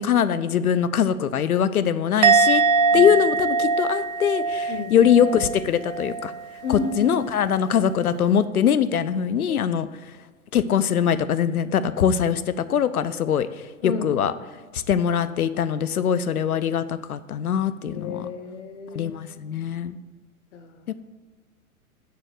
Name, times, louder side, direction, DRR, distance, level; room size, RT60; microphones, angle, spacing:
voice 1, 0.0-2.6 2.9-6.3 6.7-9.9 10.5-14.3 14.7-18.3 18.9-20.0 20.9-21.0, left 8 dB, 80° left, 13 dB, 0.6 m, -22 dB
Musical instrument, 2.2-5.6 5.9-6.3, right 4 dB, 30° right, 0.3 m, -21 dB
voice 2, 4.7-5.1 6.6-7.2 7.6-7.7 9.5-9.7 13.8-14.2 17.9-19.2 19.5-19.6 20.5-20.9, left 5 dB, 55° left, 6 dB, 0.9 m, -32 dB
6.9 x 3.9 x 6.4 m, 1.5 s
figure-of-eight pair, 110°, 44 cm